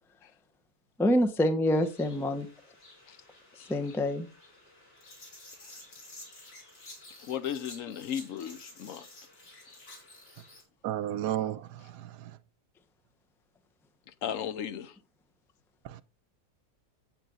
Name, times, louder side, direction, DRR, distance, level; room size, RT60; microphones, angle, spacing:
voice 1, 1.0-2.5 3.7-4.3, left 1 dB, 5° left, 0.5 m, -26 dB
sound 1, 1.7-10.6, left 2 dB, 80° left, 4.3 m, -52 dB
voice 2, 7.2-9.1 14.2-14.9, left 9 dB, 60° left, 1.0 m, -35 dB
voice 3, 10.8-12.3 15.8-16.0, right 11 dB, 80° right, 1.3 m, -33 dB
8.9 x 8.0 x 3.9 m
omnidirectional pair, 1.8 m